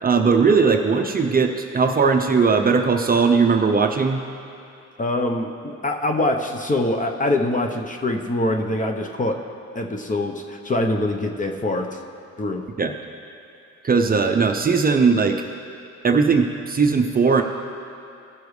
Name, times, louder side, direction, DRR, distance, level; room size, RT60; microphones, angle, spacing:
voice 1, 0.0-4.2 12.8-12.9 13.8-15.4 16.0-17.4, right 5 dB, 30° right, 4 dB, 0.6 m, -18 dB
voice 2, 5.0-9.4 9.7-12.0 12.4-12.7, left 1 dB, 25° left, 3 dB, 0.8 m, -24 dB
16.0 x 6.8 x 3.2 m, 2.5 s
cardioid pair, 90°, 30 cm